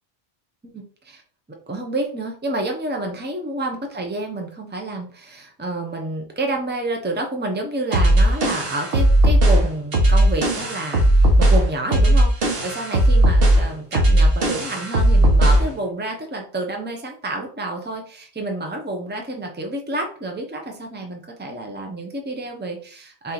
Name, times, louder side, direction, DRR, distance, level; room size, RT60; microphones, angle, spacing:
voice 1, 0.6-1.2 1.7-23.3, right 2 dB, 10° right, 2 dB, 0.7 m, -29 dB
sound 1, 7.9-15.7, right 1 dB, 65° right, 1.3 m, -16 dB
4.2 x 3.0 x 3.9 m, 0.43 s
omnidirectional pair, 1.0 m